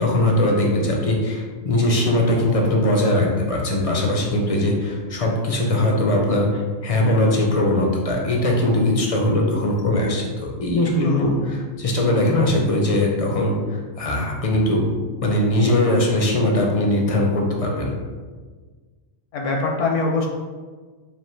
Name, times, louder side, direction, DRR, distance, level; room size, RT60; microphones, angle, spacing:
voice 1, 0.0-14.9 15.2-17.9, left 1 dB, 50° left, 0 dB, 0.4 m, -20 dB
voice 2, 11.0-11.4 19.3-20.3, left 3 dB, 75° left, 0 dB, 1.0 m, -23 dB
3.5 x 2.7 x 4.3 m, 1.4 s
omnidirectional pair, 1.3 m